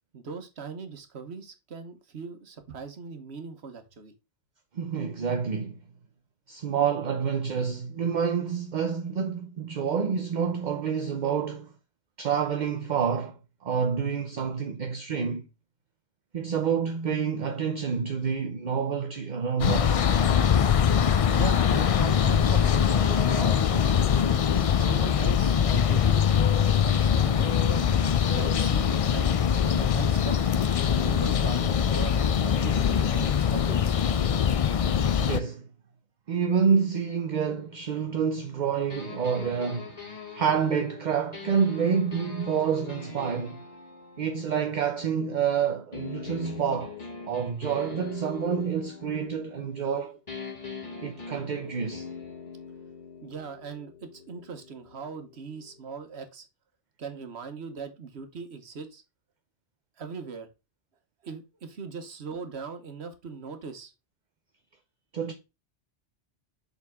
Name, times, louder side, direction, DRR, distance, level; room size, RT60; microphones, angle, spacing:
voice 1, 0.1-4.1 21.3-24.3 24.8-26.4 26.8-27.8 28.3-30.4 30.9-34.1 53.2-56.5 57.0-59.0 60.0-60.5 61.2-63.9, right 5 dB, 70° right, 1.3 m, -39 dB
voice 2, 4.7-5.8 6.5-11.7 12.2-15.5 16.3-20.0 35.2-35.7 36.3-43.6 44.2-46.9 47.3-50.2 51.0-52.1 65.1-65.3, right 6 dB, 45° right, 0.7 m, -28 dB
sound 1, 19.6-35.4, left 8 dB, 65° left, 0.3 m, -23 dB
sound 2, 38.9-45.4 45.9-49.9 50.3-56.0, left 5 dB, 35° left, 1.6 m, -43 dB
7.1 x 4.1 x 3.5 m
omnidirectional pair, 1.2 m